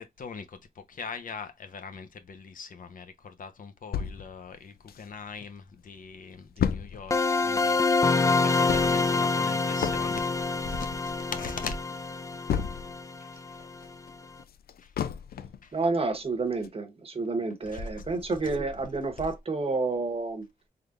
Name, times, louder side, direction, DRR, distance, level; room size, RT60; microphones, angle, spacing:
voice 1, 0.0-11.8 13.3-13.7 14.8-14.9 15.6-15.7 17.7-18.1, left 5 dB, 60° left, 0.8 m, -41 dB
sound 1, 3.9-5.5 5.9-6.0 6.1-13.1 13.5-15.7 16.1-16.2 16.6-16.7, left 8 dB, 80° left, 0.4 m, -34 dB
sound 2, 7.1-13.8, left 3 dB, 20° left, 0.4 m, -26 dB
voice 2, 15.7-20.4, right 3 dB, 40° right, 1.0 m, -29 dB
3.9 x 3.3 x 2.5 m
wide cardioid pair, 95°, 16 cm